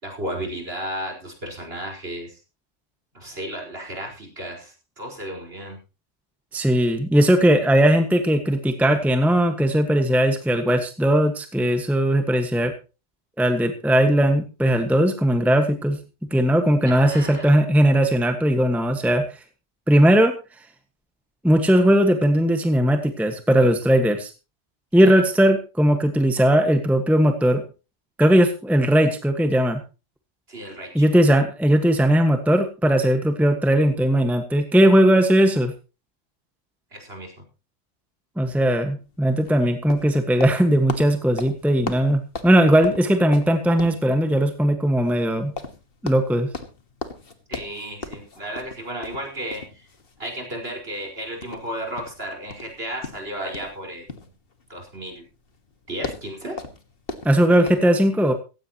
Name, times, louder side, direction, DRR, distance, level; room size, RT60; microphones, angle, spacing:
voice 1, 0.0-2.4 3.1-5.8 16.8-17.6 25.0-25.1 30.5-31.1 36.9-37.3 47.5-49.8 50.2-54.3 54.7-55.2 55.9-56.5, right 1 dB, 50° right, 1 dB, 5.1 m, -34 dB
voice 2, 6.5-12.7 13.4-16.0 16.3-19.4 19.9-20.3 21.4-24.3 24.9-27.6 28.2-29.8 30.9-35.7 38.4-45.5 46.0-46.5 57.2-58.3, equal, ahead, 6 dB, 1.5 m, -18 dB
sound 1, 39.0-57.8, left 3 dB, 50° left, 1.9 m, -38 dB
16.0 x 16.0 x 3.0 m, 0.32 s
omnidirectional pair, 1.3 m